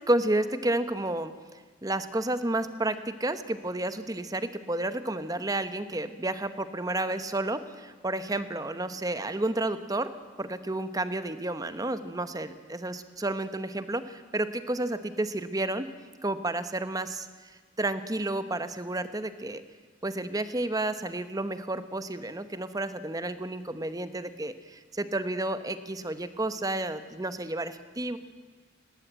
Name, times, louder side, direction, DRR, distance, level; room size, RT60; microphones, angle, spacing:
voice 1, 0.1-10.1 10.4-15.9 16.2-17.3 17.8-19.6 20.0-28.2, right 2 dB, 20° right, 11 dB, 1.0 m, -31 dB
18.5 x 18.0 x 9.3 m, 1.4 s
head